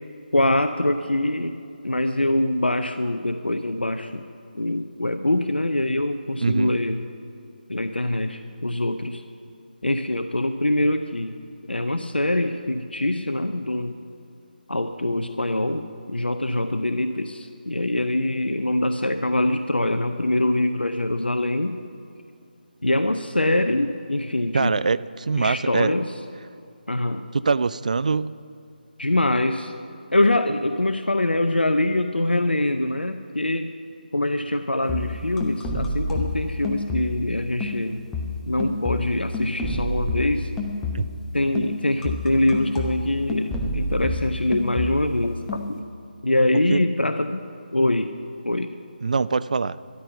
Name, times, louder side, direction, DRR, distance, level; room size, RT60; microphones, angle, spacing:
voice 1, 0.3-1.6 1.8-4.2 4.5-7.0 7.7-9.2 9.8-11.4 11.7-13.9 14.7-21.8 22.8-24.7 25.4-26.1 26.9-27.2 29.0-29.7 30.1-33.7 34.1-38.0 38.5-40.5 41.3-45.8 46.2-47.4 47.7-48.1 48.4-48.7, left 1 dB, 80° left, 9 dB, 0.6 m, -24 dB
voice 2, 6.4-6.8 24.5-25.9 27.3-28.3 40.9-41.1 46.7-46.8 49.0-49.8, right 4 dB, 45° right, 17 dB, 0.3 m, -23 dB
sound 1, 34.8-37.3 37.6-41.3 41.5-45.2 45.5-45.8, left 2 dB, 5° left, 0.6 m, -29 dB
13.0 x 11.5 x 5.8 m, 2.6 s
figure-of-eight pair, 155°, 5 cm